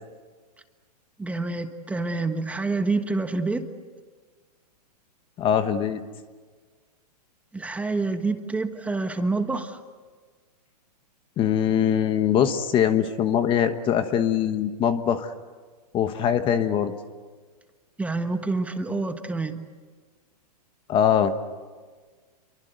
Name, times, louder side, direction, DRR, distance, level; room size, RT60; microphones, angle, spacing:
voice 1, 1.2-3.7 7.5-9.8 18.0-19.6, right 3 dB, 5° right, 7 dB, 1.3 m, -27 dB
voice 2, 5.4-6.0 11.4-15.3 15.9-16.9 20.9-21.3, left 9 dB, 25° left, 10 dB, 1.2 m, -22 dB
29.0 x 24.0 x 8.2 m, 1.5 s
hypercardioid pair, 140°, 21 cm